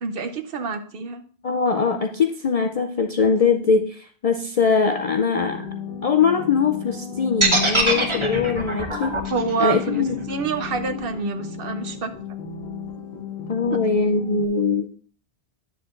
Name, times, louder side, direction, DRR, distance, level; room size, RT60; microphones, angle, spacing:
voice 1, 0.0-1.2 9.3-12.1, right 5 dB, 60° right, 8 dB, 0.9 m, -27 dB
voice 2, 1.4-5.6 6.0-9.2 9.6-10.2 13.5-14.9, left 5 dB, 55° left, 4 dB, 0.4 m, -21 dB
sound 1, 5.4-14.5, left 6 dB, 70° left, 1.3 m, -34 dB
sound 2, 7.4-11.5, right 2 dB, 30° right, 1.1 m, -23 dB
9.9 x 7.1 x 2.5 m, 0.43 s
omnidirectional pair, 1.1 m